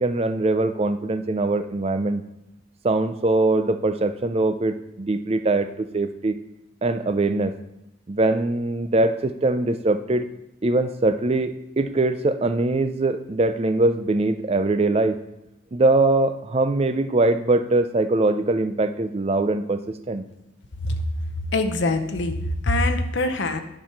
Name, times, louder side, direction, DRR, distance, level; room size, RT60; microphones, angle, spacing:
voice 1, 0.0-2.2 2.8-6.4 6.8-7.5 8.1-10.3 10.6-15.2 15.7-19.8 20.1-20.2, right 2 dB, 30° right, 10 dB, 0.4 m, -22 dB
voice 2, 21.5-22.4 22.6-23.6, left 2 dB, 60° left, 7 dB, 0.8 m, -23 dB
10.0 x 4.7 x 5.8 m, 0.88 s
head